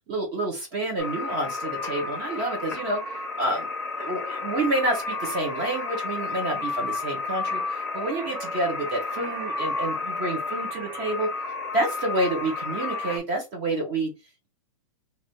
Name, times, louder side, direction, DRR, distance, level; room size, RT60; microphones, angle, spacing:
voice 1, 0.1-3.0 3.4-3.7 4.0-11.3 11.7-14.1, right 2 dB, 30° right, 2 dB, 1.4 m, -28 dB
sound 1, 1.0-13.2, left 3 dB, 5° left, 1.0 m, -32 dB
3.1 x 2.7 x 3.1 m, 0.24 s
hypercardioid pair, 165°, 18 cm